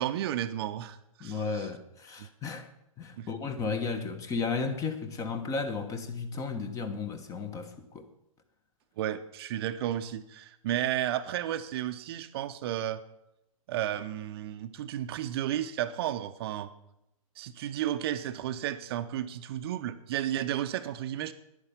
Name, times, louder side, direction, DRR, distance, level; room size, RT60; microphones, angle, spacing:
voice 1, 0.0-1.7 2.2-2.3 3.2-3.3 9.0-13.0 13.7-16.7 17.4-21.3, right 11 dB, 45° right, 0.7 m, -33 dB
voice 2, 1.2-2.7 3.0-8.1, left 4 dB, 20° left, 1.1 m, -34 dB
10.5 x 9.7 x 6.9 m
figure-of-eight pair, 120°, 18 cm